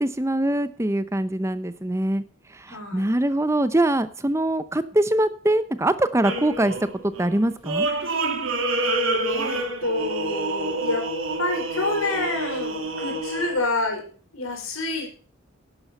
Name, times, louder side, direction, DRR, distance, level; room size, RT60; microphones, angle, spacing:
voice 1, 0.0-2.2 2.7-6.7 7.0-7.9, right 1 dB, 15° right, 13 dB, 0.7 m, -23 dB
voice 2, 2.7-3.2 9.3-11.1 11.4-14.1 14.3-15.1, left 2 dB, 85° left, 4 dB, 4.8 m, -28 dB
sound 1, 6.2-13.7, right 2 dB, 75° right, 2.7 m, -27 dB
11.5 x 10.5 x 5.4 m, 0.40 s
head